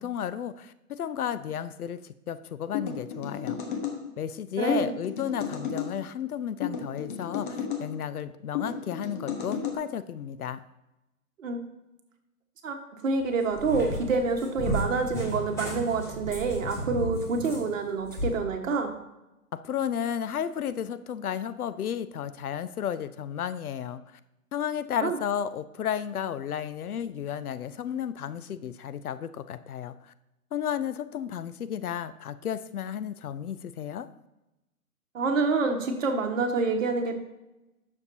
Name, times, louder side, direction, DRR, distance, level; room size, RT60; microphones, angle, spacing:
voice 1, 0.0-2.0 2.3-3.6 4.2-10.6 19.5-24.2 24.5-30.1 30.5-34.1, left 9 dB, 70° left, 14 dB, 0.6 m, -33 dB
sound 1, 2.7-4.0 4.7-5.9 6.6-7.8 8.5-9.8, left 7 dB, 35° left, 1.1 m, -33 dB
voice 2, 4.6-4.9 11.4-11.6 12.6-12.8 13.0-18.9 25.0-25.2 35.1-37.2, right 4 dB, 55° right, 4 dB, 1.4 m, -27 dB
Cat, 13.2-18.4, equal, 5° left, 2.4 m, -34 dB
9.7 x 6.6 x 2.8 m, 0.95 s
hypercardioid pair, 140°, 46 cm